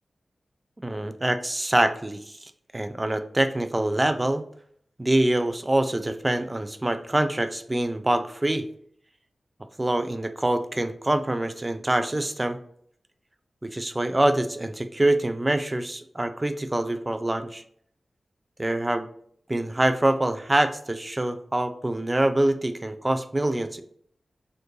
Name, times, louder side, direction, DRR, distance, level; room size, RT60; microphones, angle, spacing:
voice 1, 0.8-4.4 5.0-8.7 9.8-12.6 13.6-17.6 18.6-19.1 19.5-23.8, right 1 dB, 20° right, 9 dB, 0.4 m, -25 dB
4.4 x 2.5 x 3.1 m, 0.64 s
wide cardioid pair, 80°, 0 cm